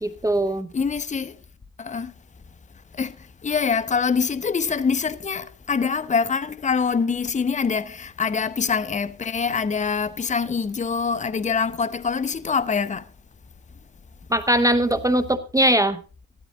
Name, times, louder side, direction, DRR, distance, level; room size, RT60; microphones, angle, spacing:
voice 1, 0.0-0.7 14.3-16.0, right 1 dB, 10° right, 0.9 m, -20 dB
voice 2, 0.7-1.4 1.8-2.1 2.9-3.2 3.4-13.1, left 5 dB, 25° left, 0.9 m, -24 dB
14.0 x 12.5 x 3.8 m
cardioid pair, 90°, 30 cm